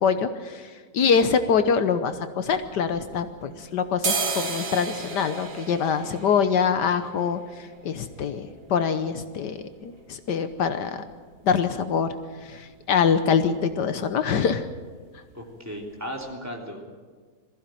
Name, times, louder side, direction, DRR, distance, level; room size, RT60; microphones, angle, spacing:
voice 1, 0.0-7.4 7.8-8.4 8.7-11.0 11.4-12.1 12.5-14.6, left 6 dB, 70° left, 10 dB, 1.5 m, -24 dB
sound 1, 2.5-3.5 3.9-11.6 11.9-12.0 12.2-12.8 13.1-13.3 13.6-13.8 14.1-14.8 15.2-15.3 15.8-15.9 16.2-16.3, right 4 dB, 50° right, 1.9 m, -35 dB
voice 2, 15.3-17.0, equal, 10° right, 0 dB, 3.1 m, -36 dB
22.0 x 15.5 x 9.1 m, 1.5 s
omnidirectional pair, 1.9 m